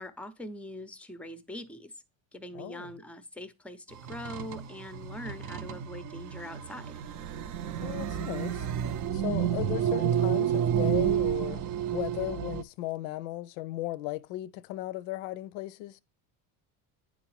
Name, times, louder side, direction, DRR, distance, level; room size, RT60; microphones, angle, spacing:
voice 1, 0.0-2.0 2.3-7.0, left 1 dB, 5° left, 0.5 m, -43 dB
voice 2, 2.5-2.9 7.8-8.7 9.1-11.6 11.9-16.0, left 16 dB, 80° left, 0.6 m, -36 dB
sound 1, 3.9-12.6, right 9 dB, 45° right, 0.5 m, -30 dB
9.7 x 3.9 x 3.1 m
cardioid pair, 120°, 43 cm